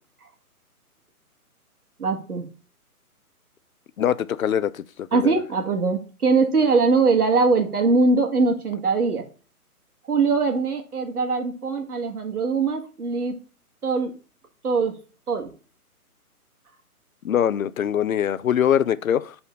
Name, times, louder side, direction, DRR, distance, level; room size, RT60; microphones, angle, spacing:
voice 1, 2.0-2.5 5.1-9.2 10.1-13.4 13.8-14.1 14.6-14.9 15.3-15.5, right 4 dB, 75° right, 1.7 m, -21 dB
voice 2, 4.0-5.3 17.2-19.3, left 9 dB, 65° left, 0.5 m, -23 dB
5.5 x 4.3 x 4.0 m
figure-of-eight pair, 140°, 45 cm